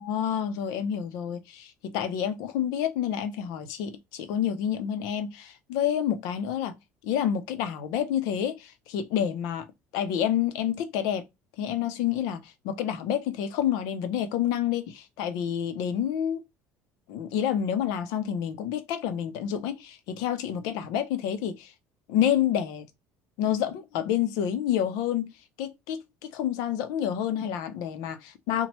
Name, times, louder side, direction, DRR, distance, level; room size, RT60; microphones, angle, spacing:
voice 1, 0.0-6.8 7.0-9.6 9.9-11.2 11.6-16.4 17.1-21.7 22.1-22.9 23.4-25.3 25.6-28.7, left 9 dB, 75° left, 0.5 m, -28 dB
2.9 x 2.1 x 2.9 m
cardioid pair, 165°, 6 cm